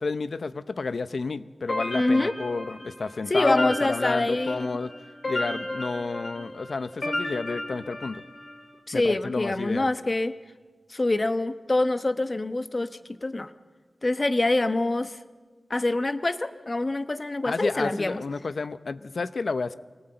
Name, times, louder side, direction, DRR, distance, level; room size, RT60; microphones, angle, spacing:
voice 1, 0.0-4.9 5.3-8.2 8.9-9.9 17.4-19.7, left 4 dB, 75° left, 13 dB, 0.7 m, -30 dB
sound 1, 1.7-8.6, left 1 dB, 55° left, 3.8 m, -33 dB
voice 2, 1.9-2.3 3.3-4.7 8.9-10.4 10.9-12.9 13.2-13.5 14.0-15.2 15.7-18.2, left 2 dB, 35° left, 10 dB, 1.0 m, -25 dB
24.5 x 18.0 x 7.9 m, 1.5 s
wide cardioid pair, 80°, 0 cm